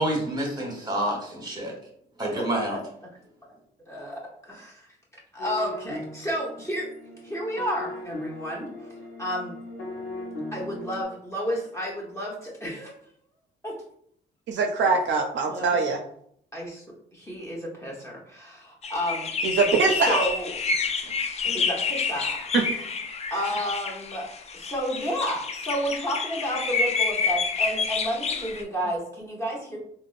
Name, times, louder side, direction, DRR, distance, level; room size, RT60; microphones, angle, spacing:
voice 1, 0.0-1.7 2.2-2.8, right 1 dB, 20° right, -1 dB, 1.1 m, -28 dB
voice 2, 3.9-5.0 5.3-6.9 7.2-8.9 9.2-9.5 10.5-13.0 13.6-13.8 15.5-15.8 16.5-19.3 19.9-20.8 21.4-22.5 23.3-24.3 24.5-29.8, equal, 15° left, -4 dB, 1.0 m, -31 dB
sound 1, 5.4-11.0, left 2 dB, 80° left, 0.7 m, -38 dB
voice 3, 14.5-16.0 19.4-20.2 22.5-22.6, right 4 dB, 65° right, 3 dB, 0.4 m, -22 dB
sound 2, 18.8-28.6, left 5 dB, 35° left, 0.4 m, -28 dB
3.4 x 2.1 x 2.4 m, 0.67 s
cardioid pair, 90°, 20 cm